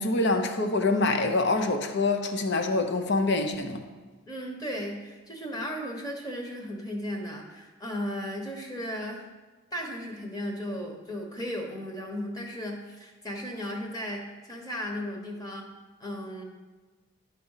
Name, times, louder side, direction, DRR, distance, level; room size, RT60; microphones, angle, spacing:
voice 1, 0.0-3.8, left 2 dB, 50° left, 0.7 m, -25 dB
voice 2, 4.3-9.2 9.7-15.7 16.0-16.4, equal, 15° left, 1.2 m, -35 dB
11.5 x 4.2 x 5.6 m
head